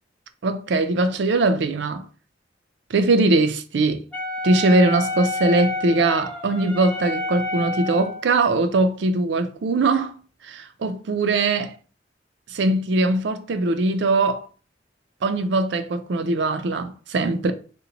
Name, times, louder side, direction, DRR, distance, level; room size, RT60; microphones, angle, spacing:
voice 1, 0.4-2.0 2.9-4.0 4.4-10.1 10.5-11.7 12.5-14.5 15.2-17.5, right 2 dB, 75° right, 0.4 m, -21 dB
Wind instrument woodwind instrument, 4.1-8.3, left 2 dB, 10° left, 0.7 m, -29 dB
2.8 x 2.1 x 3.8 m
head